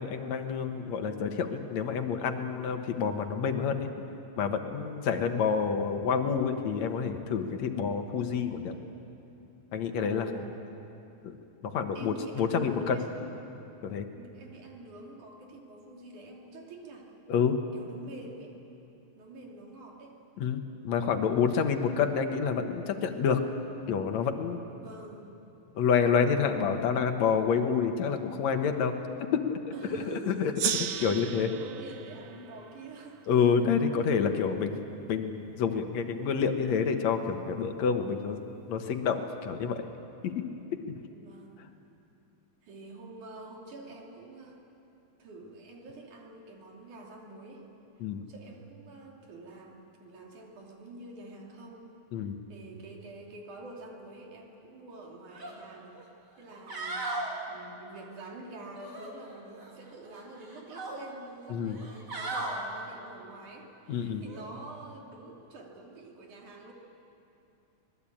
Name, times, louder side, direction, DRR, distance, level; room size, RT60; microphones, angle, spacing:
voice 1, 0.0-3.9 4.4-8.7 9.7-10.3 11.2-11.4 11.6-13.0 13.8-14.1 17.3-17.6 20.4-23.4 23.9-24.6 25.7-29.6 30.1-30.7 31.0-31.5 33.3-34.8 35.1-38.4 38.7-39.8 40.2-40.4 40.9-41.0 48.0-48.3 52.1-52.4 61.5-61.8 63.9-64.2, left 6 dB, 70° left, 6 dB, 2.5 m, -28 dB
voice 2, 10.0-10.6 11.9-13.1 14.1-17.1 17.7-18.6 19.2-20.2 24.6-25.3 29.7-30.5 31.5-33.2 33.8-34.2 41.1-41.6 42.6-44.6 45.2-47.7 48.2-56.0 56.4-57.2 57.5-66.7, right 2 dB, 90° right, -1 dB, 4.4 m, -47 dB
Gong, 30.6-33.7, right 10 dB, 70° right, 2.1 m, -36 dB
sound 1, 55.3-55.5 55.9-56.0 56.5-57.3 58.7-59.7 60.1-61.0 61.7-62.6 64.3-64.4, right 2 dB, 35° right, 3.3 m, -37 dB
25.0 x 20.5 x 8.7 m, 2.8 s
omnidirectional pair, 3.4 m